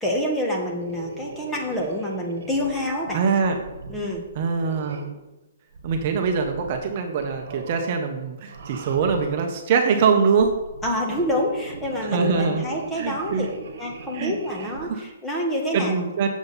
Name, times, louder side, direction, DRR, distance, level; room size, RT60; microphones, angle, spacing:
voice 1, 0.0-3.2 3.9-4.2 10.8-13.5 13.8-15.9, left 1 dB, 5° left, -1 dB, 1.3 m, -27 dB
sound 1, 0.6-5.3 5.7-6.9 7.2-8.0 8.5-9.5 10.2-14.9, right 4 dB, 70° right, 1.3 m, -40 dB
voice 2, 3.1-3.6 4.4-5.1 5.8-10.5 12.0-12.6 13.0-13.5 14.1-14.3 14.6-15.0 15.7-16.3, right 5 dB, 35° right, 4 dB, 0.9 m, -23 dB
8.6 x 7.1 x 4.1 m, 1.0 s
hypercardioid pair, 165°, 0 cm